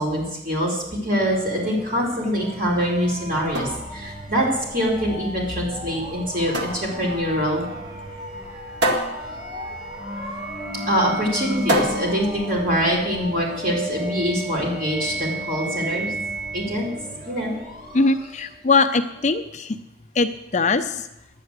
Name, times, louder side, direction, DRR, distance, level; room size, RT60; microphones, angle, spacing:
voice 1, 0.0-7.6 10.9-16.1 16.5-16.9 17.2-17.6, equal, 50° right, -3 dB, 4.2 m, -24 dB
sound 1, 1.1-18.6, equal, 25° right, 2.9 m, -34 dB
sound 2, 3.3-13.3, right 1 dB, 70° right, 1.8 m, -30 dB
voice 2, 17.9-19.8 20.1-21.1, left 3 dB, 40° left, 8 dB, 0.6 m, -21 dB
10.5 x 9.0 x 8.0 m, 0.91 s
head